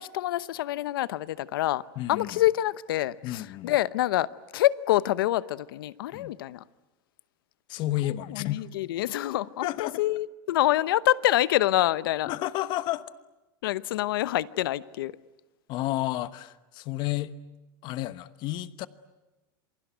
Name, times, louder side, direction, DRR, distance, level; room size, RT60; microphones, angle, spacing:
voice 1, 0.0-1.8 2.1-6.6 8.3-12.3 13.6-15.1, left 14 dB, 90° left, 0.9 m, -26 dB
voice 2, 2.0-2.3 3.2-3.7 6.1-6.3 7.7-8.7 9.6-10.0 12.3-13.1 15.7-17.3 17.8-18.9, left 15 dB, 40° left, 1.1 m, -31 dB
28.0 x 23.0 x 9.3 m
supercardioid pair, 155°, 11 cm